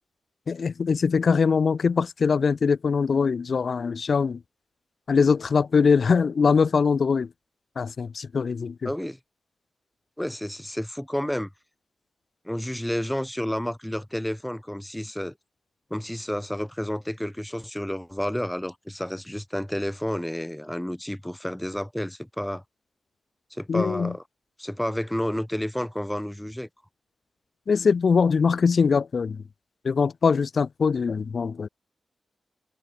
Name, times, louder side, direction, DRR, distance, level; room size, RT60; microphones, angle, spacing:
voice 1, 0.5-4.4 5.1-7.3 7.8-8.9 23.7-24.1 27.7-29.4 29.8-31.7, left 5 dB, 65° left, 0.6 m, -22 dB
voice 2, 8.8-9.2 10.2-11.5 12.4-15.3 15.9-22.6 23.5-24.2 24.6-26.7, equal, 5° left, 0.9 m, -30 dB
cardioid pair, 65°, 0 cm